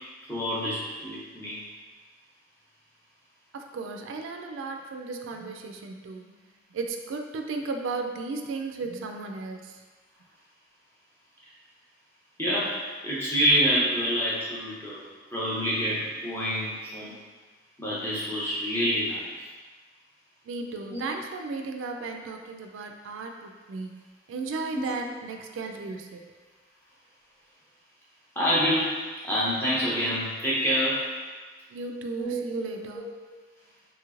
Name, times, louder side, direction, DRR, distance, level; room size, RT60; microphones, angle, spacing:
voice 1, 0.3-1.6 12.4-12.7 13.0-15.0 15.3-17.2 17.8-19.4 20.9-21.0 24.7-24.9 28.4-29.0 29.2-31.1 32.2-32.7 32.9-33.0, equal, 10° left, -8 dB, 0.6 m, -27 dB
voice 2, 3.5-6.3 6.7-9.8 20.5-24.0 24.3-26.3 31.7-33.0, right 3 dB, 85° right, 4 dB, 0.3 m, -35 dB
3.0 x 3.0 x 2.4 m, 1.4 s
head